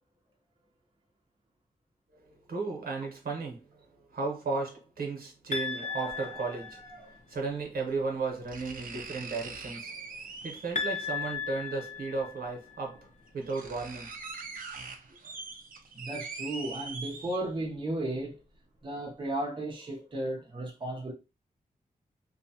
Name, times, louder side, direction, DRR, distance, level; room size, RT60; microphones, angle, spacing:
voice 1, 2.1-3.8 4.1-10.0 10.4-13.0 13.3-14.1 15.1-15.2, right 4 dB, 90° right, 0.9 m, -35 dB
sound 1, 5.5-7.2 10.8-12.8, left 5 dB, 55° left, 0.4 m, -36 dB
sound 2, 6.1-6.2 7.6-7.7 8.5-10.9 12.2-12.3 13.0-13.1 13.3-17.7 18.2-18.3, right 4 dB, 70° right, 0.5 m, -42 dB
voice 2, 15.9-18.4 18.8-21.1, right 1 dB, 35° right, 0.7 m, -34 dB
2.7 x 2.2 x 2.7 m
wide cardioid pair, 125°, 15 cm